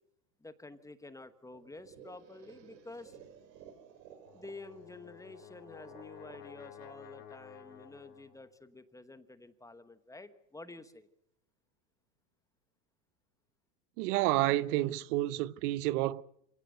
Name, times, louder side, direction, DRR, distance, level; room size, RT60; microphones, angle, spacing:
voice 1, 0.4-3.2 4.3-11.1, left 2 dB, 5° left, 1.1 m, -50 dB
sound 1, 1.5-8.4, right 7 dB, 90° right, 5.0 m, -56 dB
Brass instrument, 4.3-8.5, left 10 dB, 90° left, 4.3 m, -52 dB
voice 2, 14.0-16.2, right 16 dB, 65° right, 0.9 m, -29 dB
26.5 x 17.5 x 8.0 m
supercardioid pair, 150°, 49 cm